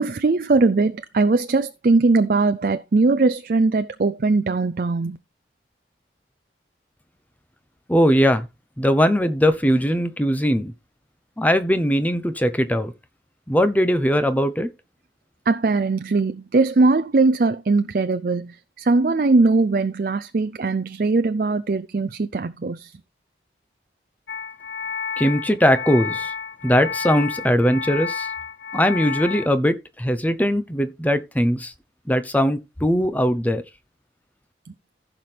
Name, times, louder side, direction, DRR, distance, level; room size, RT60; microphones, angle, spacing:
voice 1, 0.0-5.2 15.5-18.5 18.8-22.9, right 3 dB, 50° right, 0.5 m, -20 dB
voice 2, 7.9-8.5 8.8-10.7 11.4-12.9 13.5-14.7 25.2-26.3 26.6-28.3 28.7-31.7 32.1-33.6, equal, 10° left, 0.7 m, -20 dB
sound 1, 24.3-29.5, left 6 dB, 70° left, 1.0 m, -30 dB
15.0 x 5.9 x 3.4 m
head